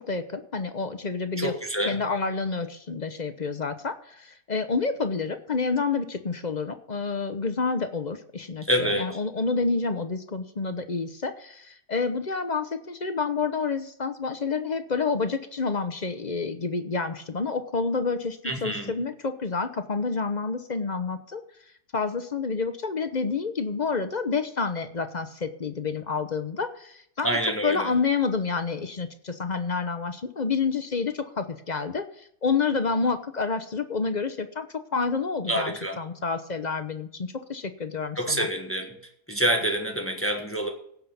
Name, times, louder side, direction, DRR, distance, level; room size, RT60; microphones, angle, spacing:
voice 1, 0.0-1.5 1.8-21.4 21.9-27.4 27.6-38.5, left 4 dB, 35° left, 9 dB, 0.7 m, -29 dB
voice 2, 1.4-2.0 8.6-9.2 18.4-18.9 27.2-27.9 35.5-36.0 38.1-39.0 39.3-40.7, right 1 dB, 10° left, 3 dB, 1.5 m, -27 dB
16.5 x 5.6 x 7.1 m, 0.68 s
omnidirectional pair, 1.7 m